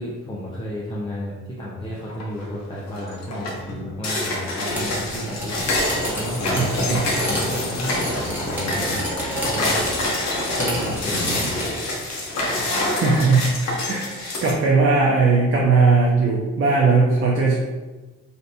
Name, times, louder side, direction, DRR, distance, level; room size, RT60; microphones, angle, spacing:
voice 1, 0.0-9.9 10.5-11.6, equal, 15° left, -5 dB, 0.6 m, -32 dB
sound 1, 2.1-2.5 2.9-14.5, left 1 dB, 60° left, 0.9 m, -26 dB
sound 2, 4.7-11.7, equal, 5° right, 1.2 m, -30 dB
voice 2, 6.5-7.0 12.7-17.6, right 4 dB, 45° right, -3 dB, 0.7 m, -19 dB
3.4 x 2.7 x 2.7 m, 1.2 s
cardioid pair, 90°, 30 cm